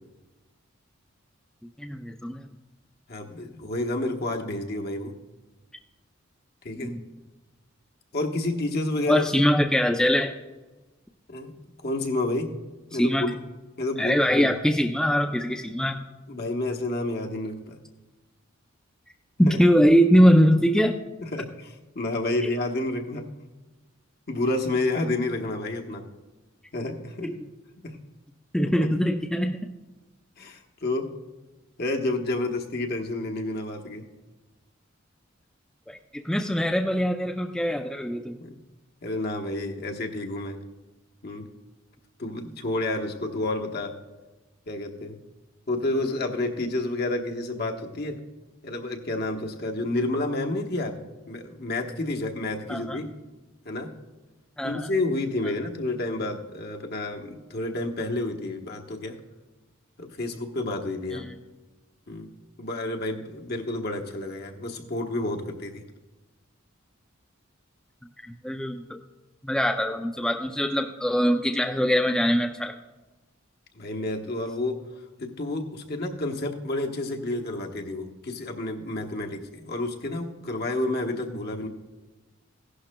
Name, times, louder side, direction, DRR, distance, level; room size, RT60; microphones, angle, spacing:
voice 1, 1.8-2.4 6.8-7.0 9.1-10.3 12.9-13.3 14.0-16.0 19.4-21.0 22.4-22.5 27.2-27.4 28.5-29.7 35.9-38.4 52.7-53.0 54.6-54.9 61.1-61.3 68.4-68.8 69.4-72.7, equal, 5° left, 3 dB, 0.3 m, -22 dB
voice 2, 3.1-5.1 6.6-6.9 8.1-9.4 11.3-11.5 11.8-12.6 12.9-13.3 13.8-14.6 16.3-17.8 19.5-19.6 21.2-23.3 24.3-26.1 26.7-27.3 27.8-28.0 28.6-28.7 30.4-31.1 31.8-34.1 38.4-38.6 39.0-40.6 41.2-41.5 42.2-43.9 44.7-45.2 45.7-48.2 48.6-51.0 51.3-53.1 53.6-53.9 54.6-59.2 60.0-61.2 62.1-62.3 62.6-65.8 73.7-74.8 75.2-81.7, left 2 dB, 50° left, 2 dB, 1.0 m, -30 dB
15.5 x 11.5 x 2.2 m, 1.2 s
head